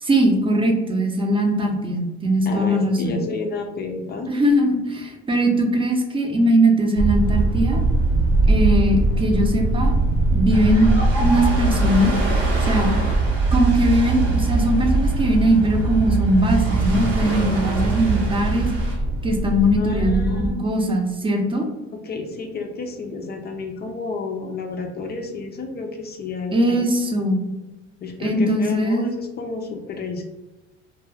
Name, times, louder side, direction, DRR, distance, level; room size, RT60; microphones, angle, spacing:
voice 1, 0.0-3.1 4.3-7.8 8.5-9.9 10.3-12.1 12.6-12.9 13.5-18.7 19.2-21.7 26.5-27.5 28.2-29.1, right 1 dB, 15° right, 3 dB, 0.5 m, -20 dB
voice 2, 2.5-4.3 19.8-20.7 21.9-26.8 28.0-30.2, left 3 dB, 35° left, 3 dB, 0.4 m, -31 dB
sound 1, 7.0-20.5, right 2 dB, 50° right, 0.8 m, -21 dB
Ocean, 10.5-18.9, right 1 dB, 85° right, 0.9 m, -31 dB
2.3 x 2.2 x 3.2 m, 1.0 s
supercardioid pair, 95°, 30 cm